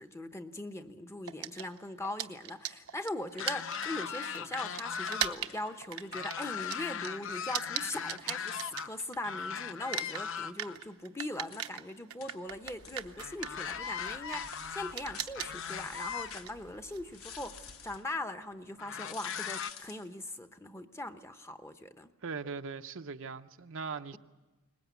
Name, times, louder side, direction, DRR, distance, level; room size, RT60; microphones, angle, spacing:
voice 1, 0.0-22.1, left 1 dB, 15° left, 0.8 m, -40 dB
sound 1, 1.3-9.4 9.7-18.0, right 10 dB, 80° right, 0.9 m, -40 dB
sound 2, 3.3-5.4 5.7-8.9 9.2-10.8 13.2-16.3 17.2-17.3 18.8-19.7, left 7 dB, 60° left, 0.8 m, -39 dB
sound 3, 4.4-7.1 7.4-7.5 7.7-10.9 11.2-11.3 11.5-11.7 12.2-12.4 12.8-13.2 13.6-13.8 14.3-16.5 17.1-18.0 18.9-20.1, left 8 dB, 75° left, 1.3 m, -50 dB
voice 2, 22.2-24.2, right 4 dB, 60° right, 0.7 m, -40 dB
22.0 x 20.0 x 8.3 m
head